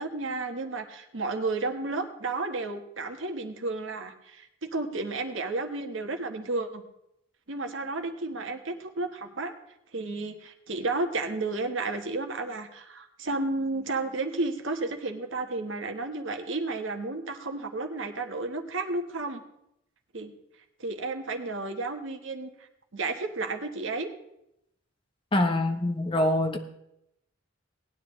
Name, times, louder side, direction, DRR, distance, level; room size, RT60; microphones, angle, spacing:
voice 1, 0.0-6.8 7.5-9.5 9.9-19.4 20.1-20.3 20.8-22.5 22.9-24.1, right 3 dB, 70° right, 5 dB, 1.2 m, -32 dB
voice 2, 25.3-26.6, left 1 dB, 25° left, 6 dB, 0.9 m, -24 dB
18.5 x 9.9 x 3.1 m, 0.80 s
head